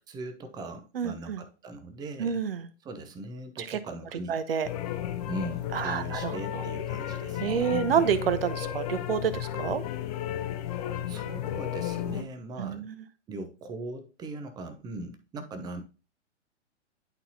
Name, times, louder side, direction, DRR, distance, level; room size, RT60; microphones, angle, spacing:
voice 1, 0.1-2.4 2.8-4.4 5.3-7.8 11.1-12.9 13.3-15.8, right 2 dB, 10° right, 9 dB, 0.7 m, -40 dB
voice 2, 0.9-1.4 2.2-2.7 3.6-3.8 4.3-4.7 5.7-6.6 7.4-9.8 12.6-13.1, right 7 dB, 55° right, 14 dB, 0.9 m, -29 dB
sound 1, 4.6-12.2, left 11 dB, 35° left, 0.7 m, -33 dB
11.0 x 4.0 x 2.8 m, 0.34 s
figure-of-eight pair, 115°, 36 cm